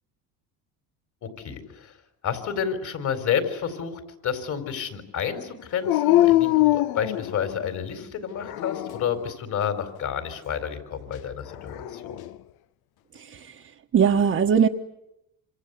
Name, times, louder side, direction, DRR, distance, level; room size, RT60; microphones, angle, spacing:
voice 1, 1.2-1.9 2.2-12.2, left 8 dB, 50° left, 8 dB, 4.5 m, -30 dB
Dog, 5.8-7.8 8.4-9.2 11.5-12.3, left 15 dB, 75° left, 1.0 m, -23 dB
voice 2, 13.1-13.6 13.9-14.7, right 7 dB, 35° right, 0 dB, 1.3 m, -20 dB
26.5 x 26.5 x 8.3 m, 0.84 s
cardioid pair, 125°, 38 cm